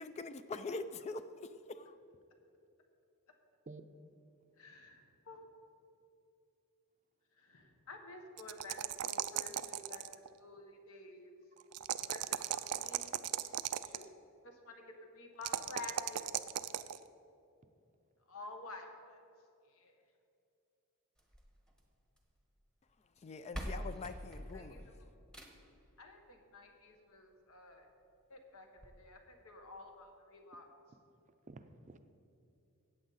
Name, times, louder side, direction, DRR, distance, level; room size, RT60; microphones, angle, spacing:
voice 1, 0.0-2.0 23.2-24.9, left 3 dB, 30° left, 12 dB, 0.3 m, -44 dB
voice 2, 4.6-5.4 7.3-10.0 10.4-11.4 12.1-13.2 13.8-14.1 14.4-16.2 18.3-19.2 19.7-19.9 24.5-25.1 26.0-27.9 28.3-30.7, left 2 dB, 70° left, 4 dB, 1.3 m, -51 dB
sound 1, 8.4-10.3 11.7-14.0 15.4-17.0, right 12 dB, 85° right, 0.4 m, -37 dB
sound 2, 21.2-22.4 23.2-23.3 23.5-25.8 27.2-27.3 27.7-27.8 28.1-28.2 28.8-28.9, equal, 5° left, 1.1 m, -45 dB
voice 3, 31.3-32.0, right 3 dB, 35° right, 9 dB, 0.5 m, -52 dB
14.5 x 8.7 x 4.1 m, 2.7 s
head